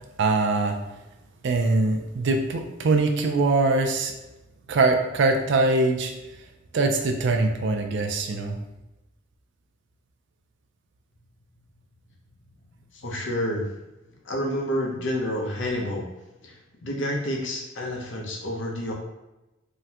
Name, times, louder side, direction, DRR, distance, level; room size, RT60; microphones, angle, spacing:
voice 1, 0.2-0.8 1.4-4.1 4.7-6.1 6.7-8.6, right 3 dB, 60° right, 5 dB, 0.4 m, -22 dB
voice 2, 13.0-13.7 14.3-16.1 16.4-16.5 16.8-18.9, left 1 dB, 65° left, 0 dB, 0.7 m, -29 dB
3.7 x 2.1 x 2.8 m, 1.0 s
head